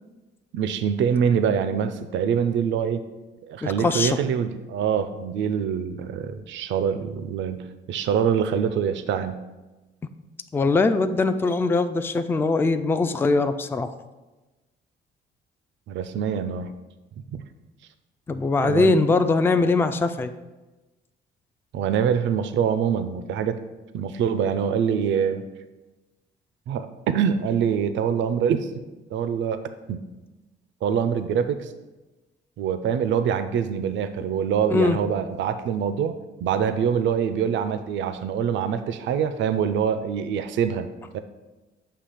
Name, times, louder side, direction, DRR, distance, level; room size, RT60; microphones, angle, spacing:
voice 1, 0.5-3.0 3.5-9.4 15.9-16.7 17.3-17.4 18.6-19.0 21.7-23.6 23.9-25.5 26.7-28.7 29.1-29.6 29.9-30.0 30.8-31.7 32.6-36.1 36.4-40.9 41.1-41.2, right 7 dB, 70° right, 10 dB, 0.4 m, -24 dB
voice 2, 3.6-4.2 10.5-13.9 18.3-20.3 34.7-35.0, left 3 dB, 10° left, 9 dB, 0.3 m, -21 dB
6.7 x 2.8 x 5.6 m, 1.1 s
cardioid pair, 90°, 20 cm